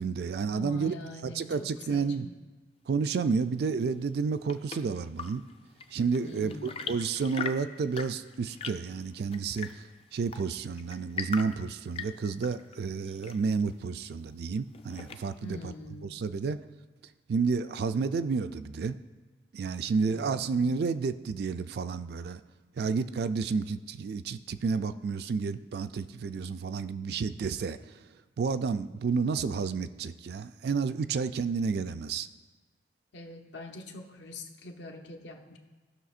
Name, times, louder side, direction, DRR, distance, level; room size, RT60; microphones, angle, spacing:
voice 1, 0.0-0.9 1.2-2.3 2.9-5.4 5.9-9.8 10.1-15.6 16.1-16.6 17.3-19.0 19.5-22.4 22.8-27.8 28.4-32.3, right 5 dB, 60° right, 11 dB, 0.3 m, -30 dB
voice 2, 0.5-2.3 6.2-7.0 15.4-16.2 20.1-20.5 33.1-35.6, left 1 dB, 75° left, 2 dB, 0.9 m, -44 dB
Chirp tweet / Engine / Tap, 4.0-15.6, left 6 dB, 35° left, 0.3 m, -42 dB
15.5 x 6.0 x 2.5 m, 1.3 s
head